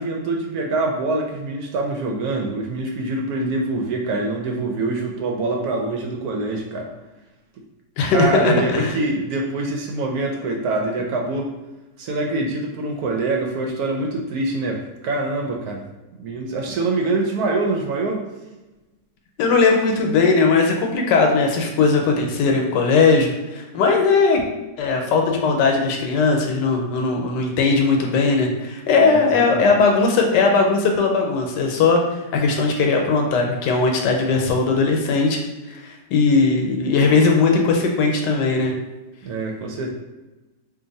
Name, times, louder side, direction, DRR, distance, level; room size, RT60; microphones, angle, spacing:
voice 1, 0.0-6.9 8.1-11.5 12.0-15.8 16.2-18.2 29.0-29.8 39.2-39.9, right 2 dB, 70° right, 1 dB, 1.0 m, -25 dB
voice 2, 8.0-8.9 19.4-24.4 24.8-32.0 32.3-35.4 35.7-35.8 36.1-38.7, left 4 dB, 80° left, 2 dB, 1.2 m, -18 dB
2.8 x 2.5 x 3.9 m, 1.1 s
omnidirectional pair, 1.9 m